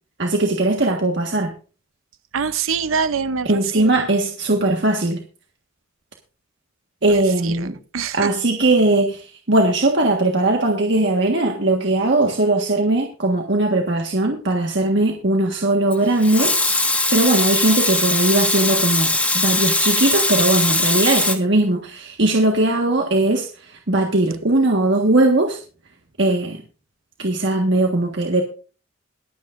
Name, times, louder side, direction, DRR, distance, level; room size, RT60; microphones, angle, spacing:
voice 1, 0.2-1.5 3.5-5.2 7.0-7.8 8.1-16.5 17.1-25.6 26.2-26.6 27.2-28.4, right 2 dB, 60° right, 1.5 m, -19 dB
voice 2, 2.3-4.1 7.1-7.7 7.9-8.3, right 6 dB, 85° right, 0.7 m, -25 dB
Water tap faucet / Sink (filling or washing) / Liquid, 15.9-21.4, left 2 dB, 5° left, 1.5 m, -20 dB
22.5 x 8.4 x 2.6 m
head